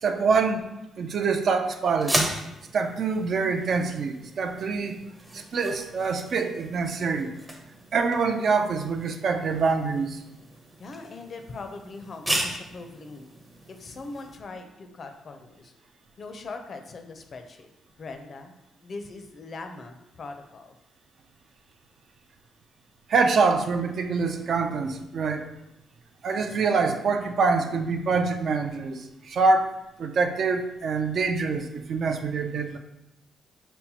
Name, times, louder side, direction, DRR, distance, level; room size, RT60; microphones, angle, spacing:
voice 1, 0.0-0.7 1.0-2.2 2.7-5.0 5.3-7.3 7.9-10.2 23.1-25.5 26.2-29.7 30.0-32.8, right 4 dB, 55° right, 6 dB, 0.3 m, -25 dB
sound 1, 1.9-14.4, right 1 dB, 10° right, 0.6 m, -35 dB
voice 2, 10.8-13.3 13.7-15.7 16.2-17.7 18.0-18.5 18.8-20.8, left 3 dB, 45° left, 6 dB, 0.4 m, -41 dB
5.4 x 2.1 x 2.8 m, 0.91 s
cardioid pair, 90°, 0 cm